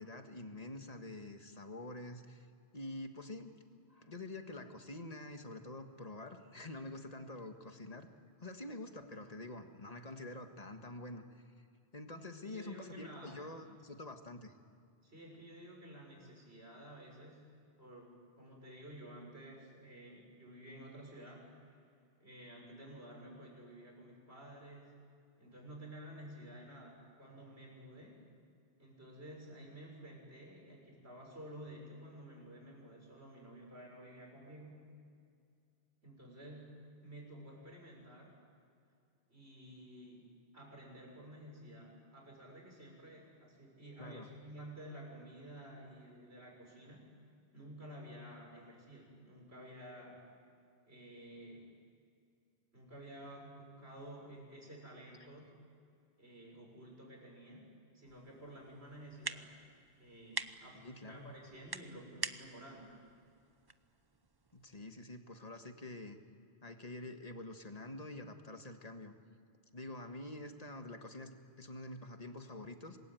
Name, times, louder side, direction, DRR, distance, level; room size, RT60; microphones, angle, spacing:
voice 1, 0.0-2.5 2.7-3.5 3.9-8.1 8.4-11.2 11.9-14.5 44.0-44.3 60.7-61.3 64.5-66.2 66.6-69.1 69.7-73.0, left 2 dB, 35° left, 6 dB, 1.7 m, -47 dB
voice 2, 12.4-13.4 15.0-17.4 17.8-21.8 22.2-24.9 25.4-28.2 28.8-34.9 36.0-38.4 39.3-40.3 40.5-47.1 47.5-50.2 50.8-51.7 52.7-55.6 56.2-59.5 60.0-63.0, right 1 dB, 70° right, -1 dB, 6.7 m, -52 dB
sound 1, 58.0-64.8, right 3 dB, 25° right, 0.7 m, -47 dB
26.5 x 21.0 x 9.2 m, 2.3 s
omnidirectional pair, 1.1 m